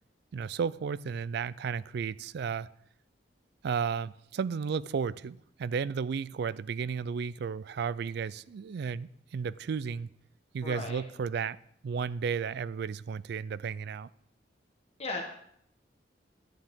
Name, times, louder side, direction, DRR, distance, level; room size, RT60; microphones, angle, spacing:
voice 1, 0.3-2.7 3.6-10.1 10.5-11.6 11.8-14.1, right 6 dB, 65° right, 0.3 m, -33 dB
voice 2, 10.6-11.0 15.0-15.2, left 2 dB, 35° left, 1.3 m, -36 dB
11.5 x 9.7 x 3.6 m
head